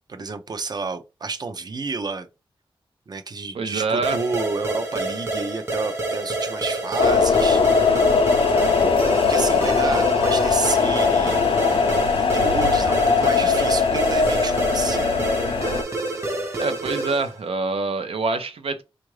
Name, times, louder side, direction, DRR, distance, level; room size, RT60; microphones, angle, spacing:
voice 1, 0.1-2.3 3.1-7.6 8.5-15.4 16.2-16.4, right 4 dB, 45° right, 0.5 m, -30 dB
voice 2, 3.5-4.2 16.6-18.8, right 3 dB, 90° right, 0.6 m, -25 dB
sound 1, 4.0-17.4, right 2 dB, 25° right, 0.9 m, -28 dB
sound 2, 7.0-15.8, left 5 dB, 70° left, 0.5 m, -20 dB
4.6 x 2.5 x 3.1 m
wide cardioid pair, 135°, 10 cm